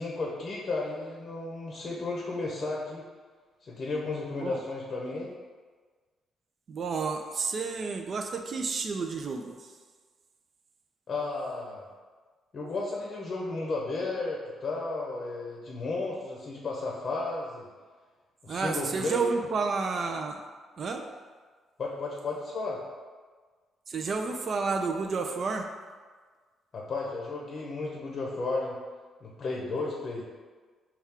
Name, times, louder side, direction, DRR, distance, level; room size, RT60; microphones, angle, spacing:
voice 1, 0.0-3.0 3.6-5.3 11.1-11.8 12.5-17.7 18.4-19.3 21.8-22.8 26.7-28.8 29.2-30.2, left 3 dB, 45° left, -3 dB, 0.7 m, -33 dB
voice 2, 6.7-9.5 18.5-20.4 20.8-21.1 23.9-25.7, right 4 dB, 50° right, 4 dB, 0.3 m, -30 dB
4.2 x 2.3 x 3.6 m, 1.5 s
cardioid pair, 90°, 0 cm